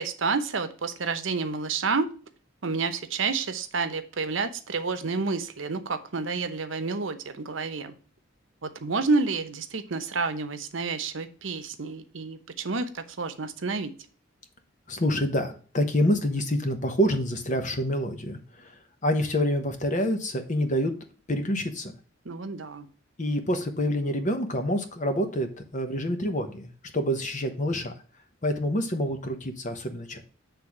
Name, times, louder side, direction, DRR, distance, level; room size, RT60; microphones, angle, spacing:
voice 1, 0.0-2.1 2.6-7.9 8.6-13.9 22.2-22.9, right 4 dB, 75° right, 10 dB, 0.8 m, -29 dB
voice 2, 14.9-18.7 19.0-20.9 21.3-21.9 23.2-27.9 28.4-30.2, equal, 40° left, 7 dB, 1.1 m, -27 dB
8.2 x 3.5 x 5.9 m, 0.40 s
head